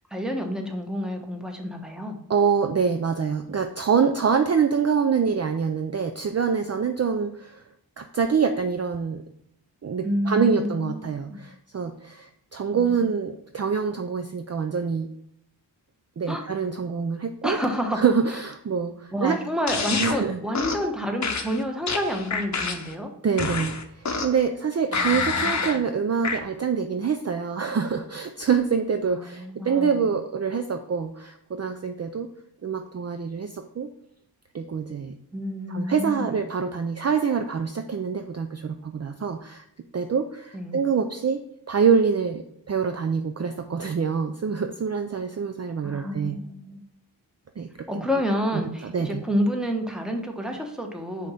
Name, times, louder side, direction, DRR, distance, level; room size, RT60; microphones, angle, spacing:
voice 1, 0.1-2.2 10.0-11.4 12.7-13.0 16.3-16.4 17.4-18.0 19.1-23.1 24.9-25.8 29.1-30.1 35.3-36.4 40.5-40.9 45.8-46.8 47.9-51.3, equal, ahead, 3 dB, 1.1 m, -29 dB
voice 2, 2.3-7.6 8.0-9.2 9.8-15.1 16.2-17.6 17.9-19.4 20.0-20.4 23.2-32.3 32.6-33.9 34.5-35.1 35.7-39.6 39.9-41.4 41.7-46.4 47.6-48.0 48.8-49.2, right 6 dB, 35° right, 7 dB, 0.5 m, -25 dB
sound 1, 19.7-20.2 20.5-20.9 21.2-22.9 23.4-24.4 24.9-25.8 26.2-26.4, left 4 dB, 40° left, 0.8 m, -27 dB
5.1 x 4.0 x 5.6 m, 0.73 s
wide cardioid pair, 65°, 43 cm